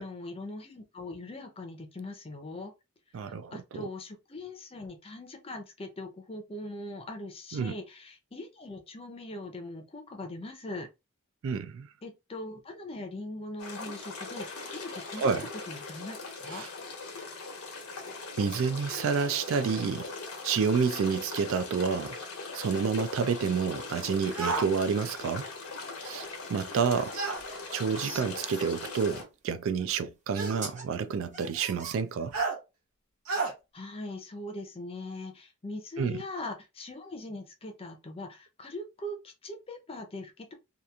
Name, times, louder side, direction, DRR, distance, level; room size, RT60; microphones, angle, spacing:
voice 1, 0.0-2.7 3.1-10.9 12.0-15.3 15.7-16.7 33.7-40.5, left 2 dB, 25° left, 0.6 m, -41 dB
voice 2, 3.1-3.9 7.5-7.7 11.4-11.9 15.2-15.5 16.5-16.7 18.4-20.1 20.4-22.2 22.5-25.5 26.0-27.2 27.7-32.3 36.0-36.2, right 6 dB, 65° right, 0.3 m, -29 dB
sound 1, 13.6-29.2, left 3 dB, 85° left, 1.0 m, -40 dB
sound 2, 24.3-24.7 27.1-27.4 28.7-28.8 30.3-30.6 32.3-32.6 33.3-33.5, right 3 dB, 90° right, 0.9 m, -30 dB
sound 3, 27.5-28.6 29.8-29.9 30.4-30.8 31.3-32.4, right 3 dB, 35° right, 1.0 m, -42 dB
2.8 x 2.4 x 2.3 m
head